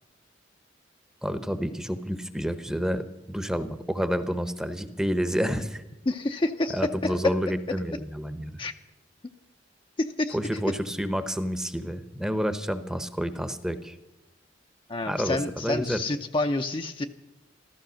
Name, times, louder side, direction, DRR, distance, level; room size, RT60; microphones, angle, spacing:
voice 1, 1.2-5.8 6.7-8.6 10.3-13.9 15.1-16.0, equal, 5° right, 10 dB, 0.8 m, -29 dB
voice 2, 6.1-7.3 8.6-8.7 10.0-10.4 14.9-17.1, left 2 dB, 25° left, 5 dB, 0.6 m, -28 dB
14.0 x 13.5 x 6.3 m, 0.93 s
head